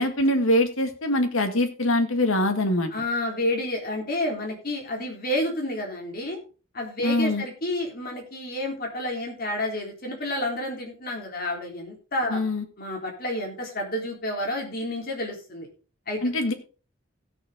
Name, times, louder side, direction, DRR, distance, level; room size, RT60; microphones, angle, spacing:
voice 1, 0.0-2.9 7.0-7.4 12.3-12.6 16.2-16.5, left 1 dB, 80° left, 6 dB, 1.8 m, -23 dB
voice 2, 2.9-6.4 6.7-12.4 12.8-15.7 16.1-16.2, left 1 dB, 45° left, 1 dB, 3.5 m, -30 dB
16.5 x 6.9 x 3.7 m, 0.35 s
head